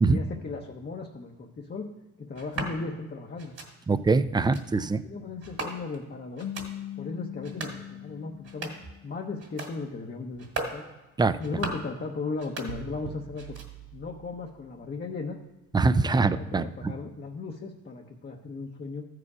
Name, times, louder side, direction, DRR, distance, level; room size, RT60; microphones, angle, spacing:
voice 1, 0.1-1.9 2.2-3.5 4.2-4.3 5.0-6.5 7.0-8.7 9.0-10.8 11.2-13.6 13.9-15.4 16.2-19.1, left 4 dB, 35° left, 1 dB, 0.9 m, -36 dB
sound 1, 2.3-2.8 3.4-3.7 4.3-4.6 5.4-6.0 6.4-6.7 7.3-7.8 8.3-8.9 9.4-9.7 10.3-10.8 11.3-11.9 12.3-13.1 13.3-13.9, right 2 dB, 50° right, 2.3 m, -38 dB
voice 2, 3.9-5.0 11.2-11.3 15.7-16.9, right 3 dB, 15° right, 14 dB, 0.4 m, -23 dB
sound 2, 6.4-9.6, left 11 dB, 70° left, 0.5 m, -41 dB
sound 3, 12.7-14.8, right 11 dB, 85° right, 0.6 m, -44 dB
14.0 x 4.8 x 4.9 m, 1.1 s
cardioid pair, 90°, 30 cm